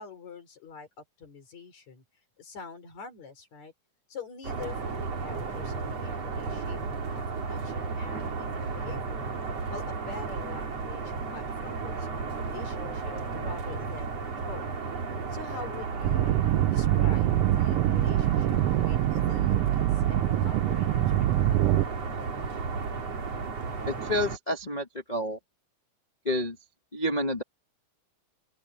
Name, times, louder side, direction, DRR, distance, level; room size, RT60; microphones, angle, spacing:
voice 1, 0.0-2.0 2.4-3.7 4.1-9.3 9.7-14.7 15.3-16.3 16.7-21.8, left 5 dB, 60° left, 5.3 m, -45 dB
sound 1, 4.4-24.4, right 4 dB, 55° right, 4.4 m, -34 dB
sound 2, 16.0-21.8, right 14 dB, 85° right, 1.3 m, -24 dB
voice 2, 23.9-25.4 26.2-26.6 26.9-27.4, left 1 dB, 40° left, 0.6 m, -29 dB
open air
omnidirectional pair, 3.5 m